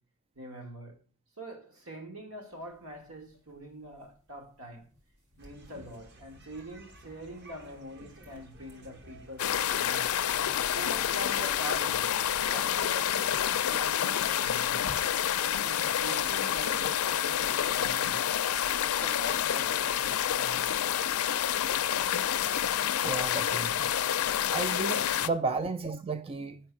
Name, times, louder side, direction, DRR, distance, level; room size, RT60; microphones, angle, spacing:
voice 1, 0.4-1.0 1.4-4.9 5.4-10.1 10.7-13.4 13.7-14.8 15.4-18.3 18.8-20.7 24.4-24.5, equal, 70° right, 2.1 m, -44 dB
sound 1, 2.5-18.3, left 1 dB, 85° right, 3.0 m, -56 dB
sound 2, 5.4-12.5, right 2 dB, 50° right, 1.2 m, -51 dB
sound 3, 9.4-25.3, left 10 dB, 80° left, 0.5 m, -28 dB
voice 2, 23.0-23.9 24.5-26.6, right 3 dB, 25° right, 0.4 m, -33 dB
10.5 x 4.5 x 6.1 m
head